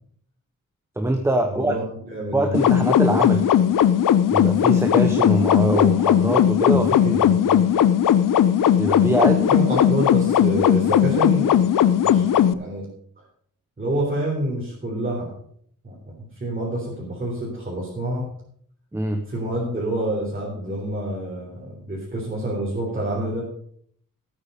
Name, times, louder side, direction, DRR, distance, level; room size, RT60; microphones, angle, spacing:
voice 1, 1.0-1.8 2.3-3.5 4.3-6.9 8.8-9.5 18.9-19.3, right 1 dB, 10° right, 5 dB, 0.8 m, -23 dB
voice 2, 1.5-2.6 6.7-7.6 9.5-11.6 12.0-12.8 13.8-15.3 15.8-18.2 19.3-23.4, right 1 dB, 25° right, -5 dB, 3.8 m, -28 dB
sound 1, 2.5-12.5, left 9 dB, 70° left, 0.7 m, -18 dB
13.5 x 9.0 x 5.3 m, 0.63 s
wide cardioid pair, 165°, 33 cm